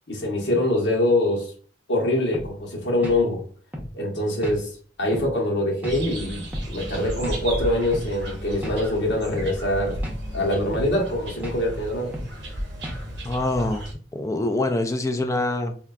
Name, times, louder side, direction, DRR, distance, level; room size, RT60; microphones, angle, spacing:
voice 1, 0.1-1.5 1.9-3.4 3.9-4.7 5.0-6.4 6.7-10.0 10.3-12.2, left 1 dB, 80° left, -1 dB, 1.0 m, -24 dB
sound 1, 2.3-2.5 3.0-3.2 3.7-3.9 4.4-4.6 5.1-5.3 5.8-6.0 6.5-6.7 7.2-7.4 7.9-8.1 8.6-8.8 9.3-9.5 10.0-10.2 10.7-10.9 11.4-11.6 12.1-12.3 12.8-13.0, equal, 10° right, 0.7 m, -34 dB
sound 2, 5.9-13.9, right 1 dB, 85° right, 0.8 m, -34 dB
voice 2, 13.2-13.9 14.1-15.8, left 2 dB, 20° left, 7 dB, 0.3 m, -25 dB
3.7 x 2.2 x 2.3 m, 0.43 s
head